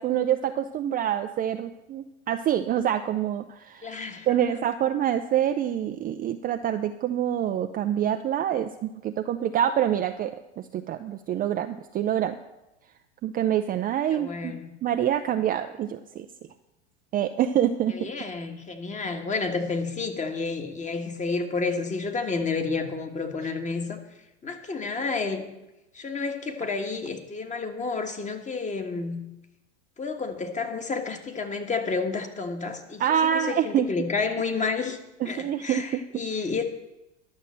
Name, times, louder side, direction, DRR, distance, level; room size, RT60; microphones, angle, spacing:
voice 1, 0.0-4.0 4.3-12.4 13.2-14.6 14.8-16.3 17.1-18.1 33.0-33.9 35.2-36.0, right 10 dB, 25° right, 7 dB, 0.4 m, -26 dB
voice 2, 3.8-4.5 14.1-14.7 17.9-24.0 24.4-25.5 25.9-29.3 30.0-33.0 33.3-35.0 35.2-36.6, left 4 dB, 20° left, 6 dB, 1.5 m, -30 dB
11.0 x 6.4 x 7.4 m, 0.95 s
hypercardioid pair, 100°, 35 cm